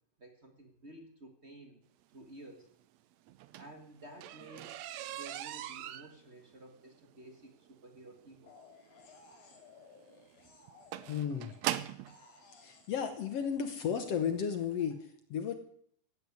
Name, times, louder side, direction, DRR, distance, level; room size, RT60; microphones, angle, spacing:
voice 1, 0.2-1.8 2.1-2.7 3.5-4.8 5.1-8.5, right 1 dB, 35° right, 5 dB, 1.1 m, -53 dB
sound 1, 3.3-12.2 13.1-13.2 13.7-13.9 14.2-14.3 14.6-14.7, right 13 dB, 85° right, 1.5 m, -41 dB
sound 2, 8.5-11.7 12.1-14.9, left 5 dB, 80° left, 4.7 m, -59 dB
voice 2, 11.1-11.5 12.6-15.5, left 7 dB, 65° left, 8 dB, 1.7 m, -34 dB
16.0 x 9.3 x 9.5 m, 0.66 s
omnidirectional pair, 4.0 m